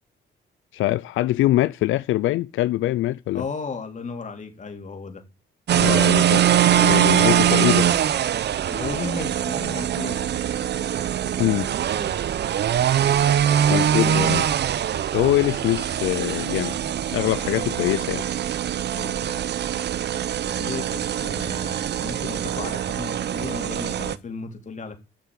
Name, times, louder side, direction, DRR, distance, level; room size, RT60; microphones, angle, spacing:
voice 1, 0.7-3.4 5.7-7.9 11.4-11.7 13.1-13.2 13.7-14.5 15.1-16.8 17.1-18.3, left 15 dB, 85° left, 0.5 m, -23 dB
voice 2, 3.3-5.2 6.6-6.7 8.7-10.2 12.0-12.2 13.4-14.5 17.2-17.4 18.9-19.5 20.5-25.0, left 4 dB, 40° left, 3.5 m, -35 dB
sound 1, 5.7-24.1, right 10 dB, 60° right, 0.8 m, -23 dB
13.0 x 6.7 x 7.7 m
cardioid pair, 90°, 20 cm